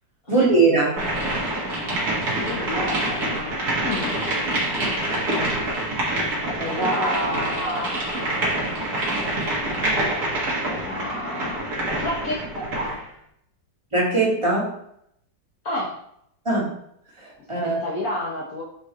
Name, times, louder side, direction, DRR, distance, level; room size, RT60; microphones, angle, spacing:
voice 1, 0.3-1.0 13.9-14.7 16.5-16.7 17.2-17.8, right 3 dB, 15° right, -5 dB, 2.1 m, -20 dB
sound 1, 1.0-13.0, right 1 dB, 55° right, 2.2 m, -26 dB
voice 2, 2.3-4.2 6.6-8.8 9.7-10.4 10.7-11.7 12.0-13.0 15.6-16.0 17.6-18.6, left 1 dB, 50° left, -4 dB, 1.7 m, -30 dB
6.6 x 5.2 x 3.1 m, 0.72 s
omnidirectional pair, 2.0 m